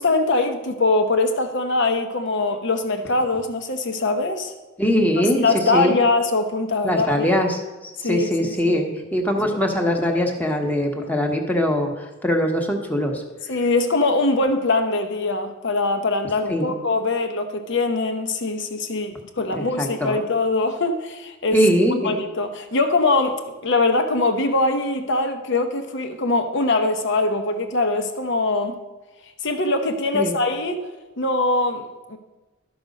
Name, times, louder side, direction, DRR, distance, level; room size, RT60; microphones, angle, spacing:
voice 1, 0.0-4.5 5.4-7.3 8.0-8.8 13.5-21.6 22.0-28.8 29.4-30.8 31.2-32.2, left 2 dB, 60° left, 6 dB, 1.0 m, -22 dB
voice 2, 4.8-5.5 5.7-6.0 6.8-13.2 16.5-16.7 19.5-20.2 21.5-22.1 30.1-30.3, equal, 10° left, 2 dB, 1.1 m, -22 dB
12.0 x 6.0 x 5.2 m, 1.2 s
head